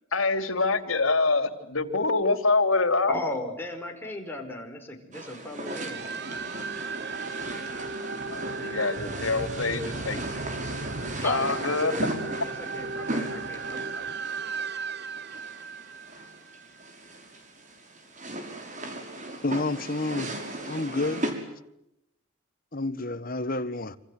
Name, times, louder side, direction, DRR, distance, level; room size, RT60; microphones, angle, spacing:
voice 1, 0.1-3.1 8.3-10.2 11.2-11.9, left 3 dB, 80° left, 3.3 m, -25 dB
voice 2, 3.1-6.1 11.2-14.0, left 2 dB, 10° left, 5.5 m, -36 dB
sound 1, 5.1-21.3, right 1 dB, 35° right, 5.8 m, -37 dB
sound 2, 5.6-16.9, right 4 dB, 55° right, 1.1 m, -36 dB
voice 3, 19.4-20.3 20.6-21.3 22.7-24.0, left 2 dB, 45° left, 1.6 m, -29 dB
27.5 x 27.0 x 7.9 m
head